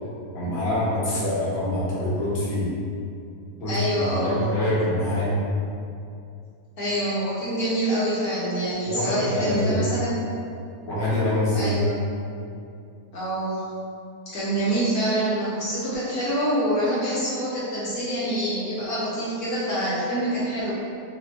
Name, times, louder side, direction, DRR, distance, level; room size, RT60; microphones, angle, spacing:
voice 1, 0.3-2.7 3.6-5.4 8.8-9.8 10.9-11.8, left 1 dB, 45° left, -10 dB, 1.3 m, -25 dB
voice 2, 3.7-4.5 6.8-10.1 11.5-11.9 13.1-13.6 14.3-20.7, right 1 dB, 70° left, -10 dB, 1.3 m, -26 dB
6.1 x 2.1 x 2.8 m, 2.5 s
omnidirectional pair, 1.7 m